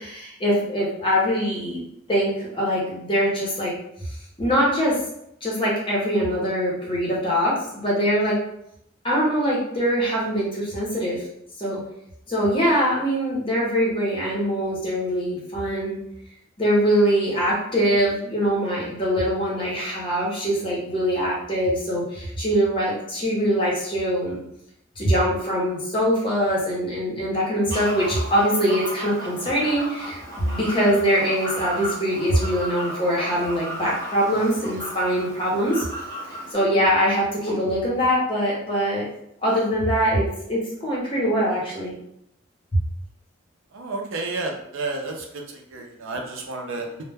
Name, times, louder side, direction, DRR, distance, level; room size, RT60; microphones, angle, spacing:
voice 1, 0.0-1.8 2.1-3.7 4.4-5.0 5.4-8.4 9.0-11.2 11.6-11.8 12.3-16.0 16.6-24.4 25.0-35.8 36.5-39.1 39.4-41.9 42.7-42.8, equal, 25° left, -5 dB, 0.7 m, -23 dB
Fowl, 27.7-36.5, equal, 50° right, 0.8 m, -35 dB
voice 2, 43.7-45.4 45.7-46.9, right 3 dB, 80° right, 2 dB, 0.5 m, -31 dB
2.1 x 2.1 x 3.3 m, 0.76 s
head